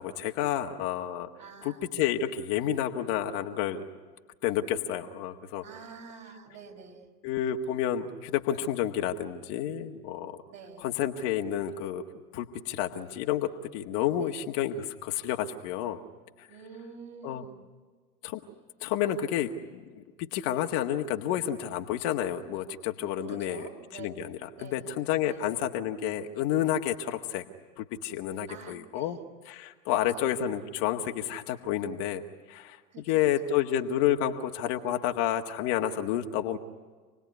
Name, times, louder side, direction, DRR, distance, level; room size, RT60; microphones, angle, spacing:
voice 1, 0.0-1.3 1.6-3.9 4.4-5.6 7.2-10.4 10.8-12.0 12.3-16.0 16.4-16.5 17.2-17.4 18.2-18.4 18.8-20.0 20.3-23.7 24.0-27.4 27.8-29.2 29.5-32.2 32.5-32.8 33.1-36.6, left 10 dB, 45° left, 4 dB, 1.7 m, -30 dB
voice 2, 1.4-1.9 5.6-7.1 10.5-10.9 14.2-14.4 16.5-17.5 23.3-24.1 24.6-25.6 28.5-29.2 29.9-30.3 32.9-33.3, right 6 dB, 35° right, 2 dB, 5.4 m, -47 dB
28.0 x 20.0 x 9.5 m, 1.4 s
hypercardioid pair, 100°, 49 cm